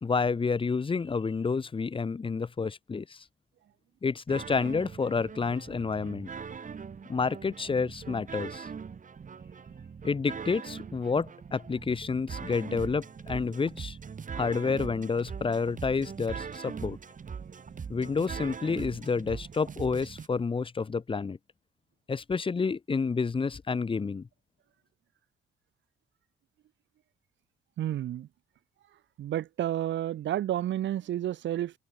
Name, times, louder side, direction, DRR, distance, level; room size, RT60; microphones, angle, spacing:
voice 1, 0.0-3.2 4.0-6.3 7.1-8.7 10.0-14.0 14.3-17.0 17.9-21.4 22.1-24.3, left 4 dB, 25° left, 0.9 m, -29 dB
sound 1, 4.3-20.3, right 6 dB, 40° right, 3.1 m, -41 dB
voice 2, 27.8-28.3 29.2-31.7, right 12 dB, 70° right, 1.2 m, -30 dB
cardioid pair, 90°, 20 cm